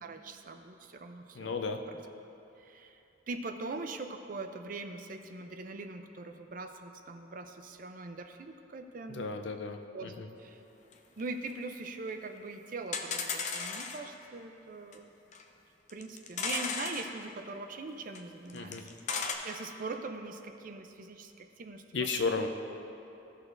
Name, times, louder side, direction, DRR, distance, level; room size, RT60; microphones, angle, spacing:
voice 1, 0.0-2.0 2.6-9.3 9.9-10.1 10.4-10.6 11.2-15.1 15.9-19.0 19.3-22.5, right 3 dB, 50° right, 6 dB, 0.5 m, -42 dB
voice 2, 1.3-1.8 9.1-10.3 18.5-18.8 21.9-22.5, left 4 dB, 85° left, 5 dB, 0.6 m, -34 dB
sound 1, 10.9-11.0 11.2-11.3 11.5-11.6 12.1-12.2 12.4-12.5 12.9-14.1 14.9-15.0 15.3-15.4 15.9-17.1 18.1-18.2 18.5-19.3, left 5 dB, 40° left, 0.6 m, -35 dB
15.0 x 6.4 x 2.6 m, 2.9 s
head